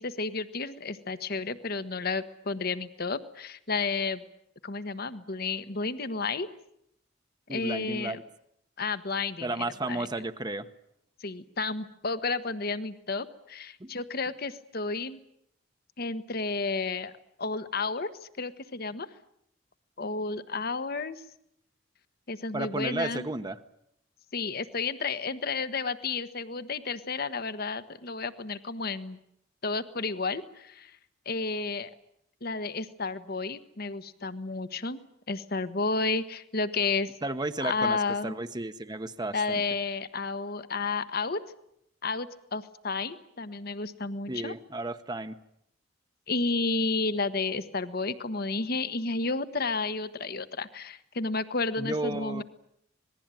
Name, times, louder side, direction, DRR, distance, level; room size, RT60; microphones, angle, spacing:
voice 1, 0.0-4.2 4.6-6.5 7.5-8.2 8.8-10.1 11.2-15.2 16.0-17.1 17.4-18.1 18.4-19.1 20.0-21.2 22.3-23.3 24.3-29.2 29.6-30.9 31.2-31.9 32.4-35.0 35.3-37.1 37.6-38.3 39.3-41.4 42.0-44.5 46.3-52.4, left 3 dB, 50° left, 12 dB, 1.2 m, -31 dB
voice 2, 7.5-8.2 9.4-10.6 13.8-13.9 22.5-23.6 37.2-38.0 38.2-39.6 44.3-45.4 51.8-52.4, right 2 dB, 20° right, 9 dB, 1.0 m, -33 dB
26.5 x 20.0 x 9.1 m, 0.76 s
head